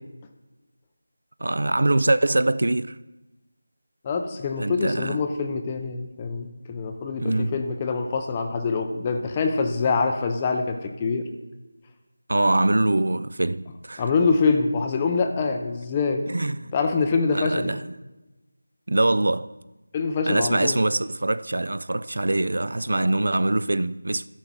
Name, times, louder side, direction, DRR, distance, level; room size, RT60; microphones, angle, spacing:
voice 1, 1.4-3.0 4.6-5.2 7.2-7.6 12.3-14.0 16.3-16.7 17.3-17.8 18.9-19.5 20.3-24.3, right 2 dB, 65° right, 0.3 m, -23 dB
voice 2, 4.0-11.3 14.0-16.3 16.7-17.8 19.9-20.8, left 4 dB, 10° left, 0.4 m, -25 dB
12.5 x 5.3 x 6.0 m
figure-of-eight pair, 180°, 0 cm